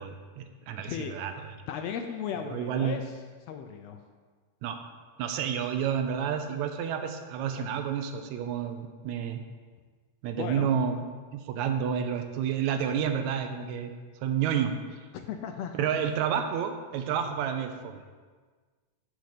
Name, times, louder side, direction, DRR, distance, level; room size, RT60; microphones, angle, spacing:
voice 1, 0.0-1.3 2.4-3.0 4.6-4.8 5.2-9.4 10.2-11.0 11.3-13.9 14.2-14.7 15.7-18.0, right 8 dB, 80° right, 7 dB, 1.9 m, -30 dB
voice 2, 1.7-3.1 3.5-4.0 10.4-10.7 15.1-15.9, left 8 dB, 80° left, 6 dB, 1.5 m, -36 dB
6.7 x 6.4 x 6.5 m, 1.5 s
omnidirectional pair, 3.3 m